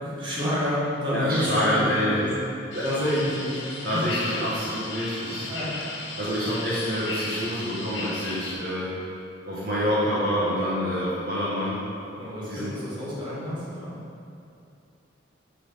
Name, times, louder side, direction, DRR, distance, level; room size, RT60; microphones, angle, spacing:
voice 1, 0.0-2.3 2.8-3.5 3.9-4.0 5.3-5.8 12.2-13.9, left 1 dB, 25° right, -9 dB, 2.4 m, -29 dB
voice 2, 1.1-2.3 2.7-3.1 3.8-5.5 6.2-8.9 9.5-11.8 12.4-12.8, equal, 50° right, -9 dB, 1.8 m, -27 dB
sound 1, 2.7-8.5, left 3 dB, 70° left, 1.7 m, -35 dB
7.9 x 6.4 x 5.8 m, 2.6 s
head